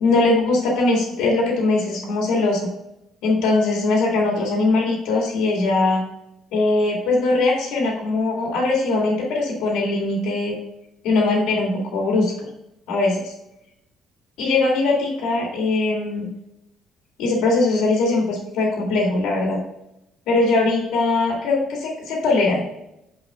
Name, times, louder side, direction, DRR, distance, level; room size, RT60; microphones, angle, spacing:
voice 1, 0.0-2.7 3.2-6.0 6.5-10.6 11.0-12.3 12.9-13.1 14.4-16.3 17.2-19.6 20.3-22.6, left 3 dB, 85° left, -2 dB, 2.1 m, -20 dB
5.9 x 5.1 x 3.7 m, 0.85 s
cardioid pair, 140°, 0 cm